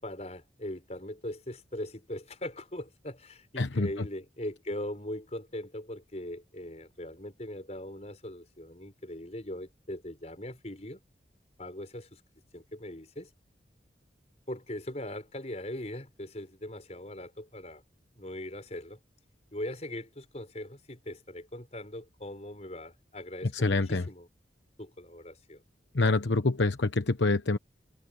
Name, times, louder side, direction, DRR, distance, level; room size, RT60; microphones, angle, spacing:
voice 1, 0.0-11.0 11.6-12.2 12.5-13.3 14.5-17.8 18.2-19.0 19.5-24.3 24.8-25.6, left 1 dB, 35° left, 5.8 m, -40 dB
voice 2, 3.6-4.1 23.4-24.1 25.9-27.6, left 3 dB, 85° left, 1.1 m, -26 dB
head